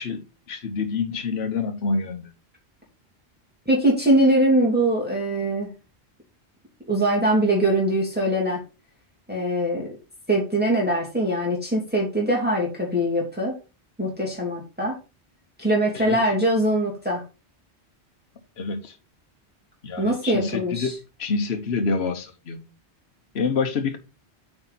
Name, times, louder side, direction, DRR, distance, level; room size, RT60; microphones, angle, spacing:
voice 1, 0.0-2.3 15.9-16.2 18.6-18.9 19.8-22.7 23.3-24.0, left 4 dB, 70° left, 1.2 m, -27 dB
voice 2, 3.7-5.7 6.9-8.6 9.3-9.9 10.3-13.5 14.0-15.0 15.6-17.2 20.0-20.9, right 1 dB, 10° right, 2.5 m, -22 dB
8.7 x 4.5 x 4.0 m
omnidirectional pair, 1.1 m